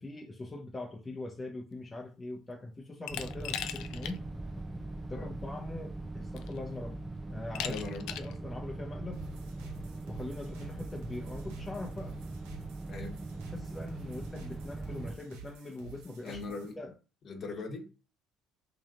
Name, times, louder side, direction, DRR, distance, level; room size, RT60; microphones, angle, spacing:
voice 1, 0.0-4.2 5.1-7.0 7.3-7.8 8.2-9.2 10.1-12.2 13.5-16.4 16.8-16.9, left 2 dB, 20° left, 0.8 m, -42 dB
Glass, 3.1-4.2 4.6-4.7 5.8-5.9 6.4-6.8 7.6-8.4, left 10 dB, 75° left, 0.4 m, -38 dB
sound 1, 3.1-15.1, right 2 dB, 15° right, 0.5 m, -41 dB
voice 2, 7.6-8.2 12.9-13.2 16.2-16.8 17.2-17.9, left 3 dB, 45° left, 1.1 m, -40 dB
sound 2, 9.1-16.7, right 5 dB, 90° right, 0.9 m, -51 dB
3.1 x 2.9 x 3.7 m
supercardioid pair, 80°, 0 cm